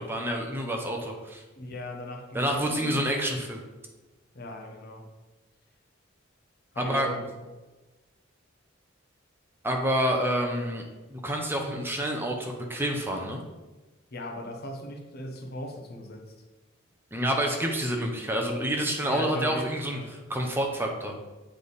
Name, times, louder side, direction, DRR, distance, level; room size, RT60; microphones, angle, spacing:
voice 1, 0.0-1.4 2.3-3.6 6.8-7.1 9.6-10.8 11.1-13.4 17.1-20.0 20.3-21.1, right 1 dB, 10° right, 1 dB, 0.8 m, -28 dB
voice 2, 1.5-3.1 4.3-5.1 6.7-7.2 14.1-16.3 19.1-20.1, left 1 dB, 50° left, 3 dB, 0.8 m, -38 dB
7.3 x 3.4 x 4.0 m, 1.2 s
head